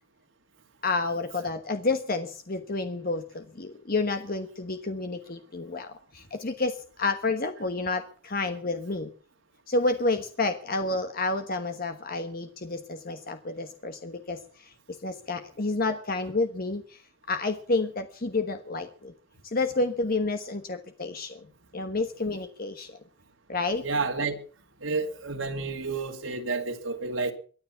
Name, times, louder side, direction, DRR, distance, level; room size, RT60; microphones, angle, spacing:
voice 1, 0.8-9.1 9.7-17.0 17.3-19.1 19.4-21.5 21.7-23.0 23.5-23.8, left 3 dB, 45° left, 1.2 m, -30 dB
voice 2, 23.8-24.4 24.8-27.3, right 3 dB, 75° right, 2.6 m, -30 dB
23.0 x 9.6 x 5.8 m
head